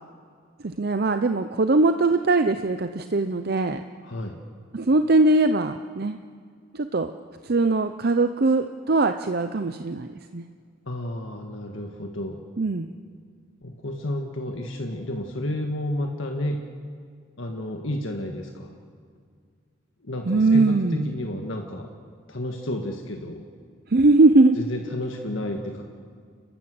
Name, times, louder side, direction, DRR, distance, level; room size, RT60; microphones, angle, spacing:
voice 1, 0.6-3.8 4.7-6.2 6.7-7.1 7.4-10.4 12.6-12.9 20.3-21.2 23.9-24.6, right 2 dB, 50° right, 8 dB, 0.6 m, -21 dB
voice 2, 4.0-4.4 10.9-12.4 13.6-16.6 17.4-18.7 20.0-21.9 22.3-23.4 24.5-25.8, left 1 dB, 70° left, 2 dB, 1.6 m, -31 dB
30.0 x 13.0 x 7.8 m, 2.1 s
head